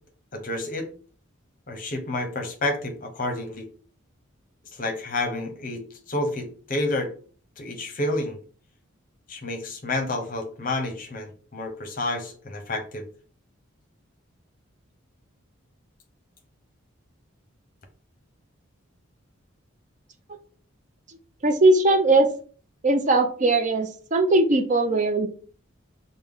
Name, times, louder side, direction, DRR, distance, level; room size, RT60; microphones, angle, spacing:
voice 1, 0.3-0.9 1.7-3.6 4.7-7.1 7.6-8.4 9.3-13.1, left 2 dB, 40° left, 5 dB, 0.8 m, -29 dB
voice 2, 21.4-22.3 22.8-25.3, right 2 dB, 35° right, 7 dB, 0.4 m, -19 dB
5.3 x 2.1 x 3.4 m, 0.42 s
head